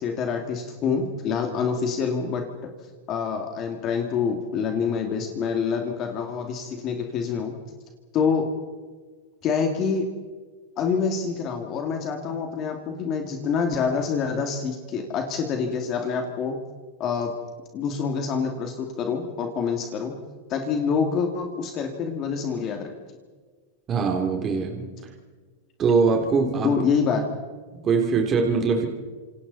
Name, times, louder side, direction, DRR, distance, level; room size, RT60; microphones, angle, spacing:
voice 1, 0.0-2.4 3.1-7.5 8.1-8.5 9.4-10.1 10.8-16.6 17.0-17.3 17.7-20.1 20.5-22.9 26.6-27.4, left 6 dB, 30° left, 3 dB, 2.5 m, -26 dB
voice 2, 23.9-24.9 25.8-26.7 27.8-28.9, right 5 dB, 25° right, 2 dB, 3.1 m, -22 dB
28.5 x 27.5 x 4.2 m, 1.5 s
supercardioid pair, 155°, 0 cm